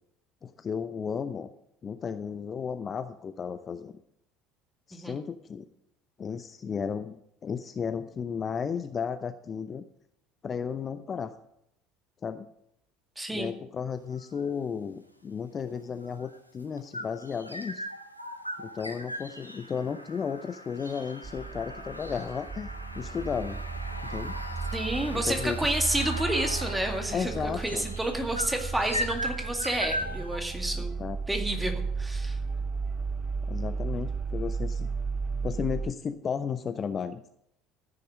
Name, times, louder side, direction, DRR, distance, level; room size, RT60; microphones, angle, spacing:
voice 1, 0.4-1.5 1.8-3.9 4.9-5.6 6.2-7.2 7.4-9.8 10.4-11.3 12.2-12.5 13.3-17.8 18.6-22.7 23.0-23.6 24.0-24.4 25.1-25.7 27.1-27.9 30.7-31.2 33.5-34.9 35.4-37.3, left 6 dB, 30° left, 11 dB, 0.6 m, -34 dB
voice 2, 13.2-13.5 24.7-32.4, right 1 dB, 10° right, 4 dB, 2.1 m, -30 dB
sound 1, 14.1-14.5 15.6-30.4, equal, 90° right, 0.8 m, -39 dB
sound 2, 21.2-35.9, right 4 dB, 25° right, 0.4 m, -34 dB
14.5 x 6.7 x 6.3 m, 0.76 s
figure-of-eight pair, 65°, 0 cm